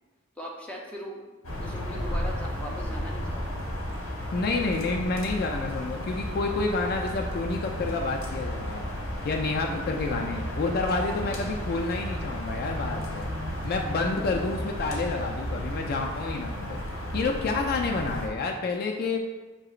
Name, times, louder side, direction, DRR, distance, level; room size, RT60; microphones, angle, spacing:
voice 1, 0.4-1.2 1.6-3.6 9.6-10.0 11.2-11.5 14.1-14.5, left 1 dB, 5° left, -3 dB, 0.6 m, -40 dB
sound 1, 1.4-18.3, equal, 80° left, 0.9 m, -33 dB
voice 2, 4.0-8.8 9.2-13.3 13.6-16.8 17.1-19.2, left 3 dB, 50° left, 2 dB, 0.3 m, -29 dB
6.1 x 2.8 x 2.4 m, 1.2 s
head